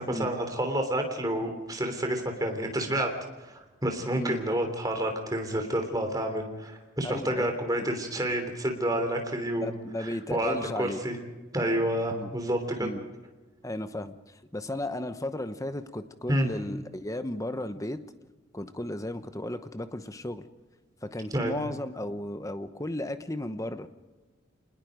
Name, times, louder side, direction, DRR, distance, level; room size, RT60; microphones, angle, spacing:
voice 1, 0.0-3.1 3.4-9.7 10.0-11.1 11.5-12.9 16.3-16.5 21.3-21.6, right 1 dB, 20° right, 4 dB, 3.2 m, -29 dB
voice 2, 7.0-7.5 9.6-11.0 12.1-12.3 12.8-13.0 13.6-18.0 18.5-20.4 21.0-23.9, left 1 dB, 15° left, 10 dB, 0.9 m, -34 dB
27.0 x 20.5 x 5.1 m, 1.2 s
head